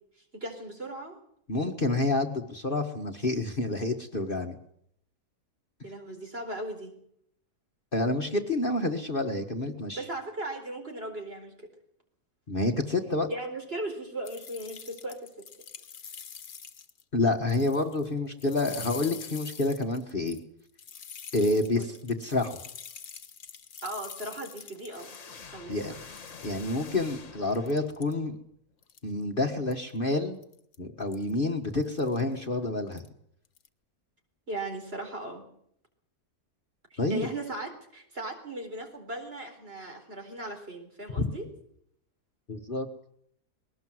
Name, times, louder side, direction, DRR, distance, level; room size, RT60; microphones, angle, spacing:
voice 1, 0.3-1.2 5.8-6.9 10.0-11.6 13.3-15.3 21.8-21.9 23.8-25.2 25.5-26.0 34.5-35.4 36.9-41.5, right 1 dB, 40° right, 3 dB, 4.4 m, -37 dB
voice 2, 1.5-4.5 7.9-10.1 12.5-13.3 17.1-20.4 21.3-22.6 25.7-25.9 26.4-28.4 29.0-30.4 30.8-33.0 37.0-37.3 41.2-41.3 42.5-42.9, left 2 dB, 35° left, 4 dB, 1.7 m, -28 dB
sound 1, 14.2-17.0 17.3-18.1 18.4-25.3 25.7-25.8 26.1-27.0 27.5-28.1 28.8-29.2 29.7-29.9 30.4-30.8 31.1-31.3 31.8-32.2 32.9-33.1 33.4-33.7, left 7 dB, 70° left, 1.7 m, -45 dB
sound 2, 24.9-28.3, left 5 dB, 55° left, 1.8 m, -47 dB
21.5 x 18.5 x 7.8 m, 0.70 s
omnidirectional pair, 1.6 m